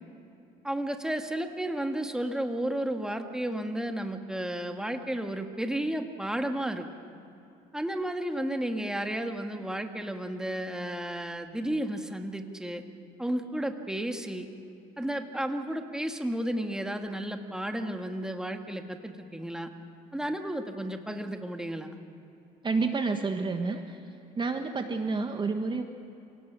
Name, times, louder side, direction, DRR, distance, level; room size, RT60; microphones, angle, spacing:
voice 1, 0.6-6.9 7.7-12.8 13.2-14.5 15.0-19.7 20.1-22.0, right 1 dB, 5° right, 5 dB, 1.8 m, -32 dB
voice 2, 22.6-24.0 24.3-25.8, right 4 dB, 30° right, 6 dB, 1.3 m, -29 dB
27.5 x 18.0 x 6.2 m, 2.8 s
cardioid pair, 90°, 16 cm